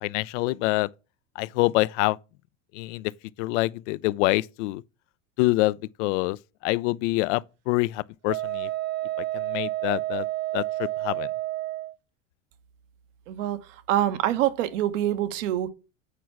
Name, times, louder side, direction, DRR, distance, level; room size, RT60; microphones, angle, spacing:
voice 1, 0.0-0.9 1.4-2.2 2.7-3.1 3.4-4.8 5.4-6.4 6.6-8.7 9.3-10.2 10.5-11.3, left 20 dB, 70° left, 0.5 m, -26 dB
Wind instrument woodwind instrument, 8.3-11.9, right 16 dB, 40° right, 0.8 m, -30 dB
voice 2, 13.3-13.6 13.9-15.7, right 12 dB, 80° right, 1.3 m, -25 dB
8.3 x 4.6 x 6.0 m
supercardioid pair, 105°, 37 cm